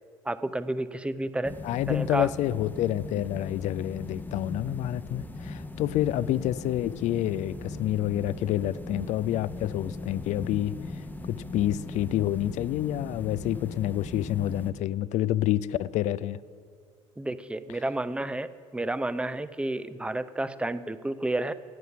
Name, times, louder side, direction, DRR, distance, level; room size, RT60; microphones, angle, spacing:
voice 1, 0.2-1.6 1.9-2.3 17.2-21.5, right 1 dB, 5° right, 14 dB, 0.6 m, -31 dB
sound 1, 1.4-14.7, left 2 dB, 10° left, 1.0 m, -39 dB
voice 2, 1.6-10.7 11.2-16.4, left 13 dB, 45° left, 18 dB, 0.5 m, -28 dB
sound 2, 6.4-11.9, right 11 dB, 50° right, 2.8 m, -58 dB
15.5 x 9.3 x 5.8 m, 2.2 s
figure-of-eight pair, 55°, 16 cm